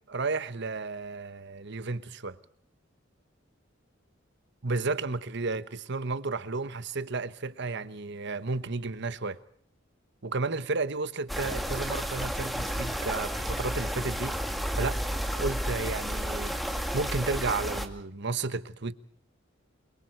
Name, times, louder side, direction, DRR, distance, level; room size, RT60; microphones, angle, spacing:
voice 1, 0.1-2.4 4.6-9.4 10.2-14.4 14.7-15.0 15.3-16.5 16.9-18.9, right 3 dB, 60° right, 1.2 m, -32 dB
sound 1, 11.3-17.9, equal, ahead, 2.1 m, -32 dB
28.0 x 23.0 x 4.7 m
head